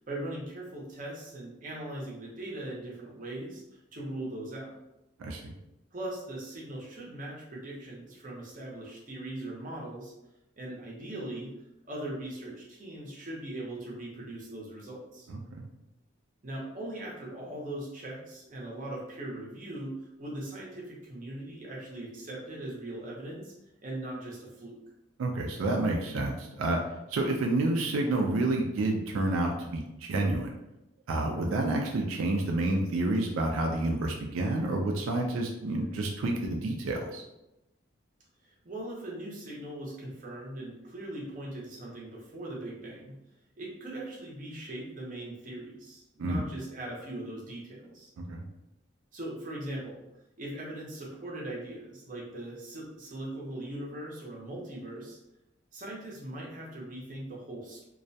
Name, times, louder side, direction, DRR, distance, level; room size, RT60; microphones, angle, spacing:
voice 1, 0.1-4.8 5.9-10.1 10.6-11.5 11.9-15.3 16.4-23.5 23.8-24.8 38.4-43.2 43.6-48.1 49.1-50.0 50.4-55.2 55.7-57.8, right 1 dB, 40° right, -3 dB, 0.6 m, -40 dB
voice 2, 5.2-5.5 15.3-15.7 25.2-26.8 27.1-30.5 31.1-37.2 46.2-46.4 48.2-48.4, right 2 dB, 90° right, 1 dB, 0.3 m, -29 dB
2.3 x 2.1 x 2.6 m, 0.92 s
head